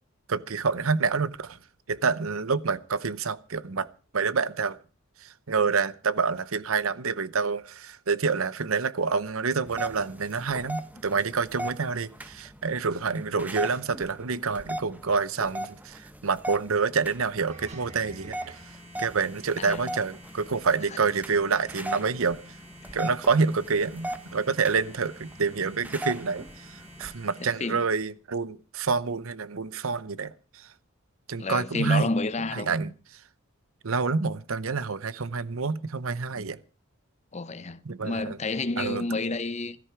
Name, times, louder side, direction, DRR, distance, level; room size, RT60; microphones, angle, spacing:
voice 1, 0.3-1.6 1.9-3.9 4.1-4.8 5.2-18.6 19.0-22.4 22.9-26.5 27.0-30.3 31.3-32.1 32.5-32.9 33.8-36.6 37.9-38.4 38.8-39.0, right 5 dB, 75° right, 0.8 m, -27 dB
sound 1, 9.7-27.1, right 1 dB, 10° right, 0.9 m, -39 dB
sound 2, 17.5-27.5, equal, 35° right, 3.8 m, -49 dB
voice 2, 19.6-20.0 22.9-23.0 27.4-27.8 31.4-32.8 37.3-39.8, left 3 dB, 30° left, 0.7 m, -30 dB
15.0 x 13.5 x 4.9 m
head